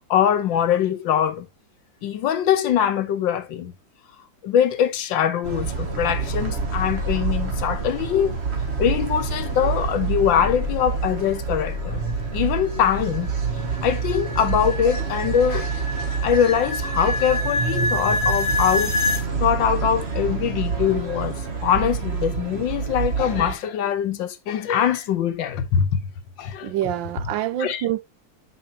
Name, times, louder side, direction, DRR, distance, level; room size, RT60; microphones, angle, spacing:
voice 1, 0.1-1.5 2.0-3.7 4.4-8.3 8.8-12.0 12.3-13.3 13.8-15.7 16.2-19.0 19.4-26.0 26.4-26.7 27.6-27.8, left 9 dB, 75° left, 1.6 m, -22 dB
sound 1, 5.4-23.5, right 4 dB, 40° right, 1.3 m, -27 dB
sound 2, 12.1-19.3, left 2 dB, 40° left, 1.6 m, -27 dB
voice 2, 26.6-28.0, right 12 dB, 80° right, 1.4 m, -26 dB
9.1 x 5.3 x 2.8 m
omnidirectional pair, 2.1 m